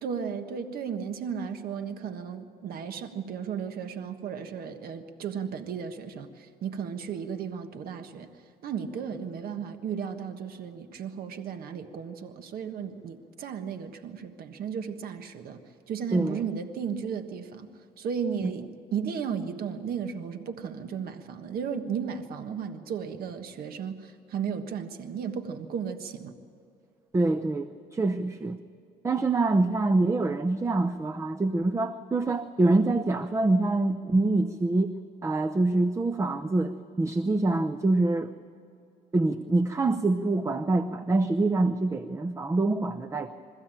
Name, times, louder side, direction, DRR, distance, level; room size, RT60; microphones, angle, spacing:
voice 1, 0.0-8.3 8.6-15.6 15.9-17.7 18.0-26.3, right 7 dB, 65° right, 7 dB, 1.4 m, -34 dB
voice 2, 27.1-28.6 29.0-34.9 35.2-38.3 39.1-43.4, right 2 dB, 15° right, 10 dB, 0.7 m, -25 dB
23.5 x 15.0 x 8.9 m, 2.6 s
cardioid pair, 110°, 17 cm